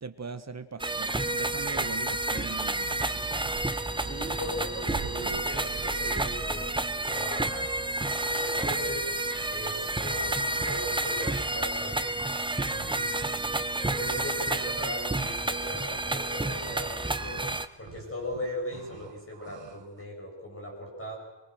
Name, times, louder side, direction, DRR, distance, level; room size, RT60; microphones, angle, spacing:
voice 1, 0.0-2.9, right 4 dB, 35° right, 10 dB, 1.3 m, -40 dB
sound 1, 0.8-17.7, right 2 dB, 10° right, 0.8 m, -30 dB
sound 2, 2.5-12.5 12.7-20.0, right 7 dB, 75° right, 1.5 m, -49 dB
voice 2, 4.0-6.7 7.0-7.7 8.4-9.1 9.5-10.3 10.6-12.0 12.5-13.7 14.0-17.4 17.8-21.2, left 1 dB, 30° left, -2 dB, 7.9 m, -39 dB
24.5 x 23.0 x 6.4 m, 1.1 s
wide cardioid pair, 170°, 44 cm